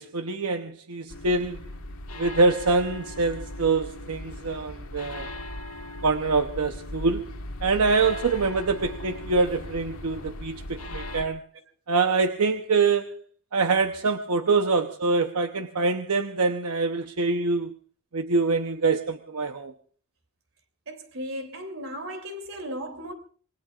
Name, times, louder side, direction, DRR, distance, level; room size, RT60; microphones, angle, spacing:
voice 1, 0.0-1.6 2.2-5.3 6.0-7.3 7.6-11.4 11.9-13.1 13.5-17.8 18.1-19.7, right 4 dB, 90° right, 0.9 m, -25 dB
sound 1, 1.1-11.3, left 1 dB, 80° left, 1.7 m, -38 dB
voice 2, 20.9-23.1, equal, 65° right, 3.2 m, -36 dB
26.5 x 21.5 x 2.5 m
head